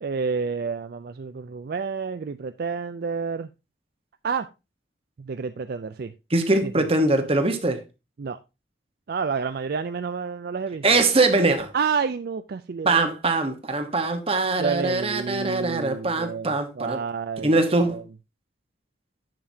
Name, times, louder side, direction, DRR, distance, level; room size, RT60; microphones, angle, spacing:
voice 1, 0.0-3.5 4.2-4.5 5.2-6.1 6.6-6.9 8.2-8.4 9.1-11.0 11.7-13.0 14.6-17.6 17.9-18.0, right 5 dB, 55° right, 0.4 m, -29 dB
voice 2, 6.3-7.8 10.8-11.7 12.8-17.0 17.4-18.0, right 2 dB, 30° right, 1.2 m, -22 dB
10.5 x 6.9 x 2.8 m
head